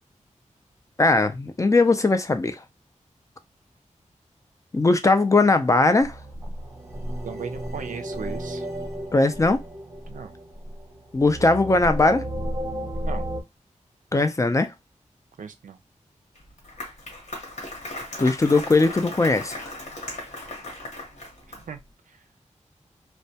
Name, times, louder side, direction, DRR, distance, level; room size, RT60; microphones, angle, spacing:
voice 1, 1.0-2.6 4.7-6.1 9.1-9.6 11.1-12.2 14.1-14.7 18.2-19.6, left 3 dB, 25° left, 0.3 m, -19 dB
sound 1, 6.0-13.4, equal, 20° right, 0.7 m, -33 dB
voice 2, 7.2-8.7 10.1-10.3 13.0-13.3 15.4-15.8 21.5-21.8, right 7 dB, 90° right, 0.4 m, -37 dB
Applause, 16.3-21.8, left 1 dB, 65° left, 1.0 m, -37 dB
2.2 x 2.1 x 2.7 m
wide cardioid pair, 105°, 13 cm